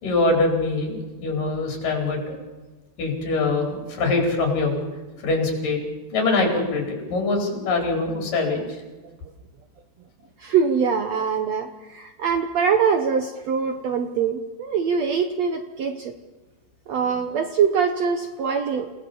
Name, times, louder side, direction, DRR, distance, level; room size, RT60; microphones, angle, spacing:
voice 1, 0.0-2.4 3.0-4.7 5.2-5.8 6.1-8.6, left 3 dB, 65° left, 1 dB, 6.0 m, -23 dB
voice 2, 10.4-16.1 16.9-18.9, right 6 dB, 65° right, 7 dB, 1.8 m, -23 dB
29.5 x 18.0 x 7.1 m, 1.3 s
omnidirectional pair, 4.2 m